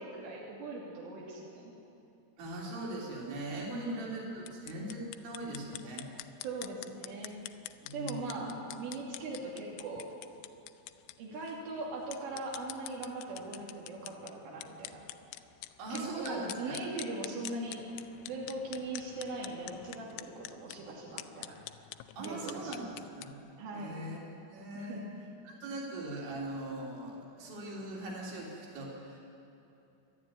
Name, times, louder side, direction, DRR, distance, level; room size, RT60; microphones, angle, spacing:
voice 1, 0.0-1.7 3.7-4.1 6.4-7.4 7.9-10.1 11.2-15.0 15.9-17.8 18.3-21.6 22.2-22.7 23.6-24.0 24.7-25.1, right 2 dB, 90° right, -4 dB, 5.3 m, -40 dB
voice 2, 2.4-6.1 7.8-8.5 15.8-16.8 22.2-23.4 23.7-24.3 24.5-25.0 25.4-29.3, right 2 dB, 70° right, -3 dB, 5.9 m, -40 dB
sound 1, 4.4-23.3, left 16 dB, 80° left, 2.9 m, -47 dB
28.5 x 12.5 x 9.5 m, 2.8 s
omnidirectional pair, 5.6 m